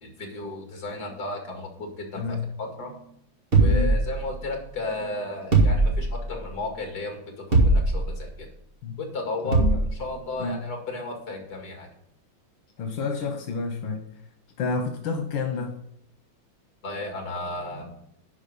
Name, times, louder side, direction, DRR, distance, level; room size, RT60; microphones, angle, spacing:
voice 1, 0.0-2.2 2.6-3.0 3.6-7.2 7.5-8.5 9.0-9.7 10.0-11.9 16.8-17.8, left 2 dB, 55° left, 2 dB, 2.6 m, -34 dB
voice 2, 2.1-2.5 3.6-4.0 8.8-9.0 9.4-9.9 10.4-10.7 12.8-14.1 14.6-15.8, left 3 dB, 85° left, 5 dB, 1.9 m, -30 dB
sound 1, 3.5-4.6 5.5-6.4 7.5-8.2 9.5-10.0, right 2 dB, 30° right, 1.9 m, -21 dB
10.5 x 5.2 x 5.4 m, 0.73 s
omnidirectional pair, 2.1 m